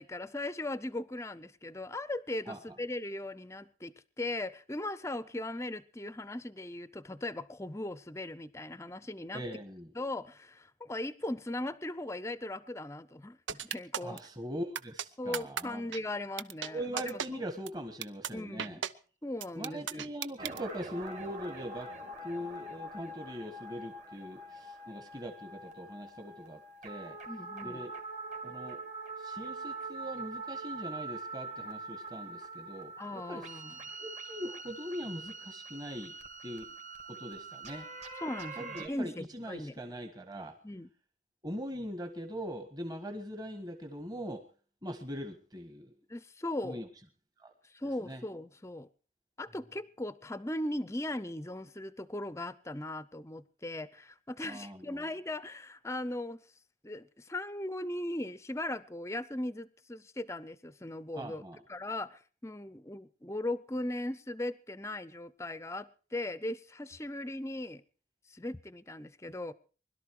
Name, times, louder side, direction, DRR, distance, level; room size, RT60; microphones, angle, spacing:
voice 1, 0.0-9.4 10.0-14.2 15.2-17.0 17.3-17.4 18.3-18.8 19.2-20.0 27.3-27.8 33.0-33.8 38.2-39.7 40.6-40.9 46.1-46.8 47.6-48.9 49.4-56.4 56.8-61.4 61.7-67.8 68.3-69.5, left 1 dB, 15° left, 0.6 m, -38 dB
voice 2, 9.3-9.9 14.0-15.8 16.6-18.8 19.5-21.9 22.2-27.2 27.6-27.9 28.4-28.8 29.2-33.5 34.0-36.1 36.4-36.7 37.1-37.9 38.6-40.6 41.4-44.4 44.8-45.9 46.6-46.9 47.4-47.5 48.0-48.2 54.4-55.0 61.2-61.6, equal, 20° right, 1.5 m, -41 dB
sound 1, 13.5-14.2 14.7-15.0 15.3-15.6 15.9-16.0 16.4-16.7 17.0-17.3 17.7-17.8 18.0-18.3 18.6-18.9 19.4-20.6, right 8 dB, 85° right, 0.7 m, -34 dB
sound 2, 20.4-38.9, right 3 dB, 40° right, 2.4 m, -44 dB
21.0 x 12.5 x 4.7 m
head